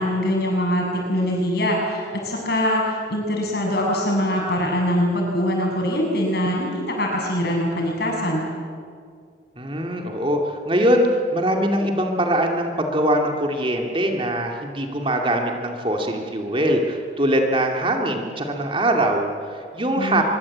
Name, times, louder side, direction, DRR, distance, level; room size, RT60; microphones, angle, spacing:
voice 1, 0.0-8.4 20.0-20.2, equal, 55° left, -1 dB, 7.9 m, -23 dB
voice 2, 9.6-20.2, right 1 dB, 25° right, 2 dB, 2.5 m, -22 dB
24.5 x 23.0 x 8.7 m, 2.2 s
head